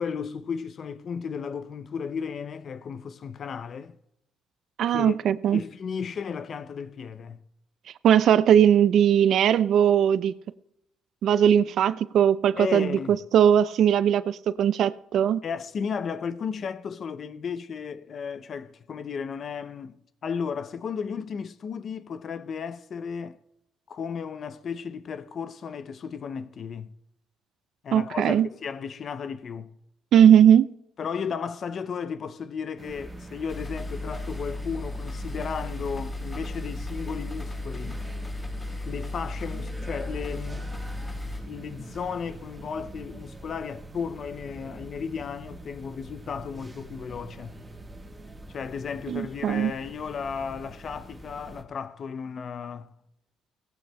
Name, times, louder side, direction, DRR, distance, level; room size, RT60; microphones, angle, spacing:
voice 1, 0.0-4.0 4.9-5.2 5.5-7.4 12.6-13.2 15.4-19.9 20.2-23.4 23.9-26.9 27.8-29.7 31.0-38.0 38.9-40.8 41.5-47.6 48.5-52.9, left 6 dB, 45° left, 0.5 m, -34 dB
voice 2, 4.8-5.6 8.0-10.3 11.2-13.0 13.3-15.4 27.9-28.5 30.1-30.7 49.1-49.7, right 9 dB, 65° right, 0.4 m, -19 dB
sound 1, 32.8-51.6, right 2 dB, 15° right, 1.4 m, -44 dB
sound 2, 33.5-41.4, left 2 dB, 20° left, 3.4 m, -35 dB
18.5 x 15.0 x 2.2 m
cardioid pair, 115°, 0 cm